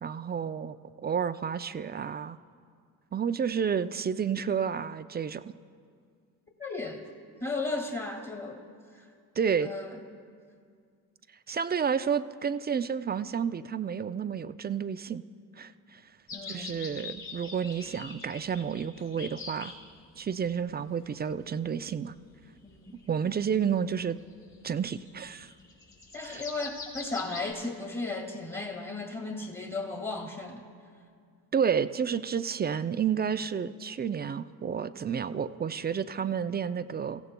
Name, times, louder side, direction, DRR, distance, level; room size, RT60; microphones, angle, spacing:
voice 1, 0.0-0.8 1.0-2.4 3.1-5.5 9.4-9.7 11.5-15.2 15.6-16.0 16.5-19.7 20.2-22.1 23.1-24.2 24.6-25.5 26.2-26.4 31.5-37.2, right 7 dB, 25° right, 12 dB, 0.4 m, -30 dB
voice 2, 6.6-7.0 7.4-8.6 8.9-9.1 9.6-10.0 16.3-16.8 22.6-23.0 26.1-30.6, left 3 dB, 20° left, 0 dB, 1.9 m, -35 dB
sound 1, 16.3-19.8 20.5-21.7 22.2-23.2 23.6-23.7 24.4-27.5, left 4 dB, 70° left, 4.4 m, -44 dB
28.5 x 15.5 x 2.2 m, 2.2 s
supercardioid pair, 65°, 44 cm